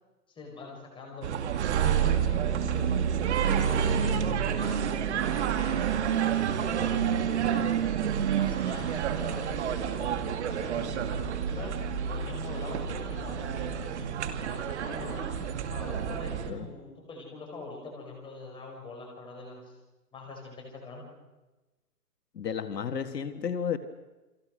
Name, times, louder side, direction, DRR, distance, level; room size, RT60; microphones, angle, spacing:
voice 1, 0.3-1.3 1.7-2.6 3.5-6.0 6.4-7.7 8.3-10.1 10.5-11.8 12.1-14.1 14.5-15.4 15.7-19.7 20.1-21.1, left 3 dB, 10° left, 0 dB, 4.9 m, -43 dB
sound 1, 1.2-16.5, right 8 dB, 45° right, 2.2 m, -29 dB
voice 2, 22.3-23.8, left 7 dB, 75° left, 9 dB, 1.9 m, -32 dB
29.5 x 23.5 x 6.4 m, 1.1 s
hypercardioid pair, 155°, 49 cm